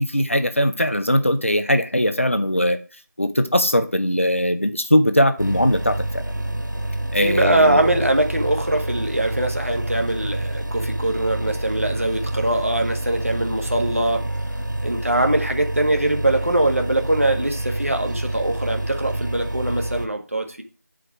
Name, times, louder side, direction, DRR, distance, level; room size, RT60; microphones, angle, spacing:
voice 1, 0.0-2.8 3.2-6.2 7.1-8.0, equal, 45° left, 0.9 m, -20 dB
sound 1, 5.4-20.1, right 1 dB, 85° right, 1.1 m, -28 dB
voice 2, 7.2-14.3 14.8-20.6, right 1 dB, 45° right, 1.5 m, -22 dB
8.5 x 5.0 x 4.7 m
figure-of-eight pair, 175°, 10 cm